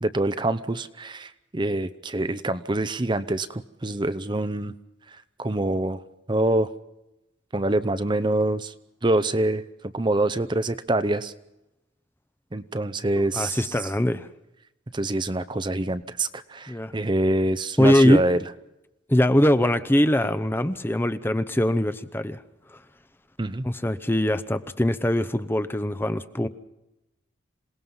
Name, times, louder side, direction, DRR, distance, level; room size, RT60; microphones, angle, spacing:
voice 1, 0.0-4.7 5.4-6.0 6.3-6.7 7.5-8.7 9.0-9.6 9.9-11.3 12.5-13.6 14.9-18.4 23.4-23.7, right 2 dB, 25° right, 12 dB, 0.7 m, -25 dB
voice 2, 13.3-14.3 16.7-16.9 17.8-18.2 19.1-22.4 23.6-26.5, left 1 dB, 10° left, 12 dB, 0.7 m, -22 dB
27.0 x 18.5 x 5.5 m, 0.92 s
head